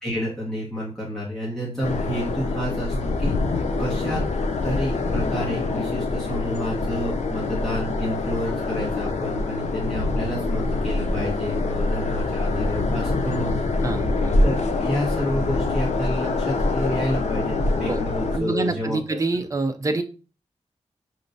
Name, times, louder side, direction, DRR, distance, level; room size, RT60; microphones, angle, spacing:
voice 1, 0.0-4.2 4.6-13.7 14.4-19.2, equal, 5° left, -7 dB, 1.4 m, -30 dB
sound 1, 1.8-18.4, left 3 dB, 85° left, 0.6 m, -25 dB
voice 2, 13.8-14.4 17.9-18.0 18.3-20.0, right 2 dB, 30° right, 7 dB, 0.5 m, -26 dB
5.6 x 3.2 x 2.6 m, 0.34 s
wide cardioid pair, 120°, 11 cm